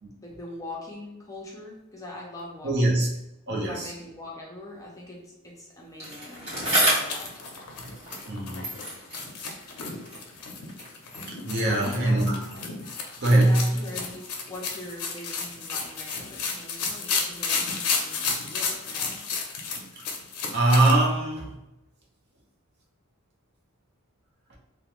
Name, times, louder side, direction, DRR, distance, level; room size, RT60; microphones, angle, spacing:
voice 1, 0.2-3.0 3.5-7.3 11.6-12.2 13.4-19.2, left 1 dB, 15° left, -3 dB, 0.5 m, -42 dB
voice 2, 2.6-3.1 3.5-3.9 8.3-8.7 11.4-12.4 12.8-13.8 19.9-20.0 20.5-21.6 24.5-24.6, right 1 dB, 50° right, -2 dB, 0.6 m, -22 dB
Bicycle, 6.0-8.4 8.6-11.0 11.8-11.9, equal, 30° right, 1.4 m, -30 dB
sound 1, 6.7-20.9, left 5 dB, 80° left, 0.5 m, -32 dB
2.4 x 2.1 x 2.9 m, 0.91 s
head